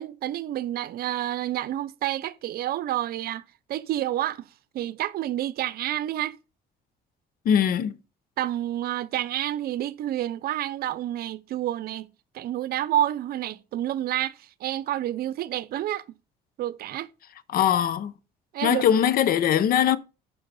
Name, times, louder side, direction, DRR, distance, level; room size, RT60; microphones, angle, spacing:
voice 1, 0.0-4.5 4.7-6.4 8.4-12.1 12.3-16.2 16.6-17.1 18.5-18.9, right 12 dB, 65° right, 0.7 m, -29 dB
voice 2, 7.4-8.0 17.5-18.1 18.6-20.0, left 9 dB, 60° left, 0.8 m, -21 dB
10.5 x 5.6 x 5.4 m
cardioid pair, 110°, 17 cm